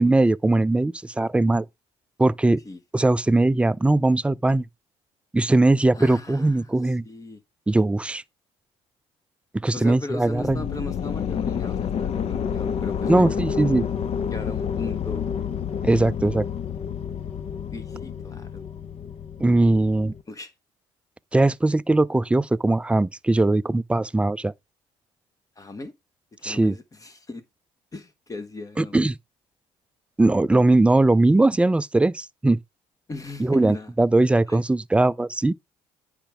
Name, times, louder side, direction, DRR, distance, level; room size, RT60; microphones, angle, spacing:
voice 1, 0.0-1.7 2.2-2.6 2.9-4.6 5.3-7.0 7.7-8.2 9.6-10.6 13.1-13.8 15.8-16.5 19.4-20.1 21.3-24.5 26.4-26.7 28.8-29.2 30.2-32.6 33.4-35.5, right 2 dB, 10° right, 0.4 m, -20 dB
voice 2, 5.9-7.4 9.7-13.6 14.3-15.3 16.2-16.3 17.7-18.6 20.3-20.5 25.6-25.9 26.4-27.4 27.9-29.0 33.1-33.9 34.5-34.6, left 2 dB, 25° left, 1.2 m, -37 dB
sound 1, 10.3-20.2, left 8 dB, 55° left, 0.8 m, -29 dB
10.0 x 5.1 x 3.4 m
supercardioid pair, 75°, 13 cm